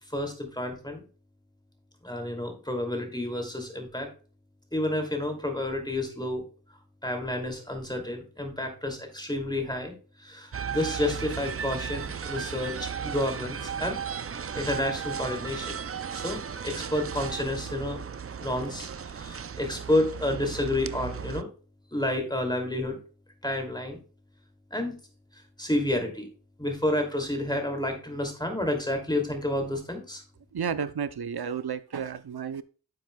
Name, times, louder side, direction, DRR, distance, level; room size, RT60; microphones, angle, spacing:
voice 1, 0.1-1.0 2.0-4.1 4.7-6.4 7.0-9.9 10.2-14.0 14.5-15.8 16.1-18.0 18.4-21.5 21.9-23.0 23.4-24.0 24.7-24.9 25.6-26.3 26.6-30.2, left 1 dB, 10° left, 2.6 m, -30 dB
sound 1, 10.5-21.4, right 7 dB, 35° right, 0.4 m, -35 dB
voice 2, 30.5-32.6, right 7 dB, 70° right, 0.7 m, -32 dB
10.5 x 7.6 x 2.3 m
wide cardioid pair, 45°, 40 cm